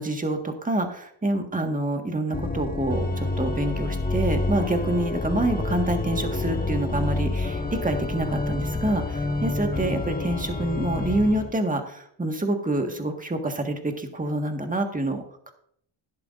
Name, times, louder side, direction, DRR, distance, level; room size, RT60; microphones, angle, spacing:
voice 1, 0.0-15.5, right 1 dB, 15° right, 5 dB, 1.6 m, -27 dB
Organ, 2.3-11.5, left 2 dB, 20° left, 1.3 m, -28 dB
12.5 x 10.5 x 2.6 m, 0.67 s
cardioid pair, 90°, 48 cm